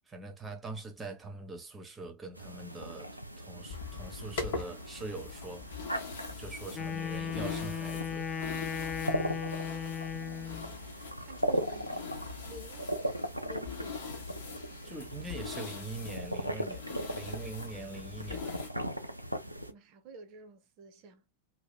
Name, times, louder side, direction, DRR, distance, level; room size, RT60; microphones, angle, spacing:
voice 1, 0.1-6.0 6.4-8.3 14.8-18.7, right 3 dB, 15° right, 0.9 m, -43 dB
sound 1, 2.4-19.7, equal, 90° right, 0.4 m, -39 dB
sound 2, 3.7-18.7, left 5 dB, 55° left, 0.9 m, -43 dB
Wind instrument woodwind instrument, 6.7-10.7, left 7 dB, 20° left, 0.4 m, -36 dB
voice 2, 9.7-12.0 12.4-12.9 13.4-14.3 19.7-21.2, right 2 dB, 40° right, 0.6 m, -51 dB
2.8 x 2.1 x 4.0 m
figure-of-eight pair, 90°, 0 cm